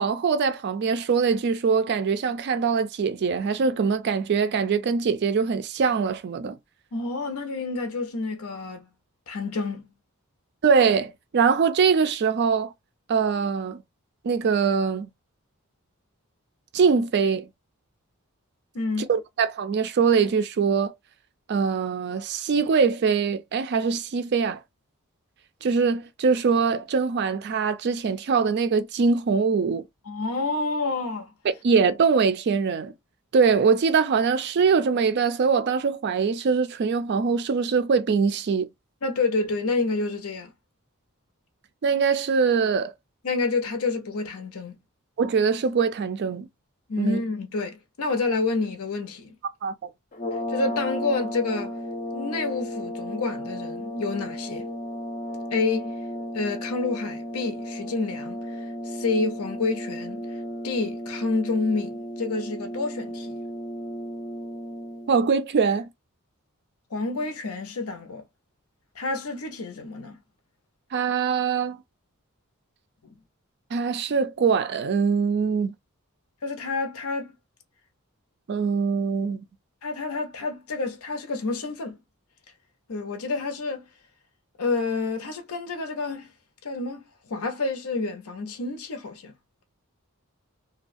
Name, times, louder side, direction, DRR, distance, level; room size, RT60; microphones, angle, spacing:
voice 1, 0.0-6.6 10.6-12.7 13.1-13.8 14.2-15.1 16.7-17.5 19.0-20.9 21.5-24.6 25.6-29.8 31.4-32.9 33.3-38.7 41.8-42.9 45.2-46.5 47.0-47.2 49.6-49.9 65.1-65.9 70.9-71.8 73.7-75.7 78.5-79.4, right 5 dB, 50° right, 0.3 m, -23 dB
voice 2, 6.9-8.9 9.3-9.9 18.7-19.1 30.1-31.3 39.0-40.5 43.2-44.7 46.9-49.3 50.5-51.7 52.1-54.6 55.5-55.9 56.3-58.6 58.8-60.2 60.6-63.4 66.9-68.2 69.0-70.2 76.4-77.3 79.8-82.0 82.9-83.8 84.6-86.3 86.6-87.0 87.3-89.3, left 3 dB, 90° left, 0.7 m, -28 dB
sound 1, 50.1-65.2, equal, 35° left, 0.5 m, -34 dB
2.4 x 2.2 x 2.5 m
head